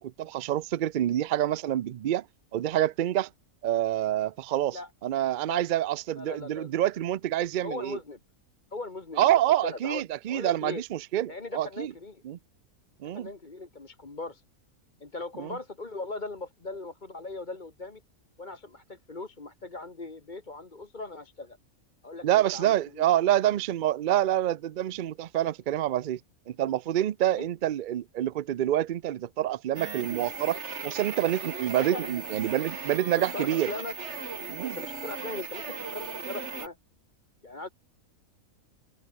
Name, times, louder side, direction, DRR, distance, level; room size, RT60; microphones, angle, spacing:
voice 1, 0.0-2.2 2.5-3.3 3.6-8.0 9.2-11.9 12.2-12.4 13.0-13.3 15.4-15.6 22.2-26.2 26.5-33.7 34.5-34.8, right 12 dB, 70° right, 0.4 m, -27 dB
voice 2, 6.2-6.7 7.6-8.2 8.7-9.3 9.6-10.0 10.3-10.8 11.3-12.2 13.0-14.4 15.0-18.0 18.4-21.6 22.0-23.0 27.3-27.5 31.8-32.1 32.9-33.9 34.6-36.8 37.4-37.7, left 3 dB, 30° left, 2.1 m, -39 dB
sound 1, 29.8-36.7, right 5 dB, 50° right, 1.9 m, -37 dB
open air
omnidirectional pair, 1.5 m